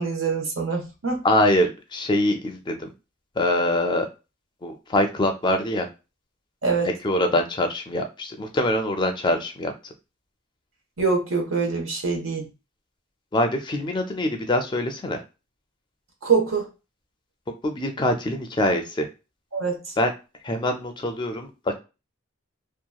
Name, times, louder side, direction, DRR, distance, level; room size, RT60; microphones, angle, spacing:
voice 1, 0.0-1.2 6.6-6.9 11.0-12.5 16.2-16.7 19.5-19.8, right 4 dB, 90° right, 2 dB, 0.9 m, -24 dB
voice 2, 1.2-2.9 3.4-4.1 4.6-5.9 7.0-9.7 13.3-15.2 17.6-19.1 20.0-20.1 20.4-21.7, left 1 dB, 20° left, 5 dB, 0.4 m, -24 dB
2.8 x 2.3 x 2.3 m, 0.29 s
head